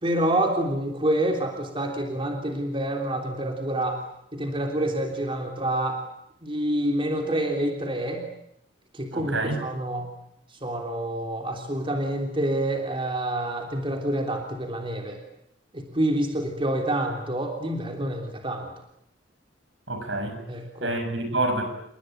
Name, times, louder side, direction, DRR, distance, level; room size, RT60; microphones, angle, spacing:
voice 1, 0.0-4.0 4.3-6.0 6.4-8.3 8.9-10.1 10.6-15.2 15.7-18.7 20.5-20.9, right 1 dB, 30° right, 3 dB, 3.4 m, -27 dB
voice 2, 9.1-9.6 19.9-20.4 20.8-21.6, right 2 dB, 75° right, 6 dB, 7.2 m, -27 dB
29.5 x 19.5 x 9.2 m, 0.77 s
head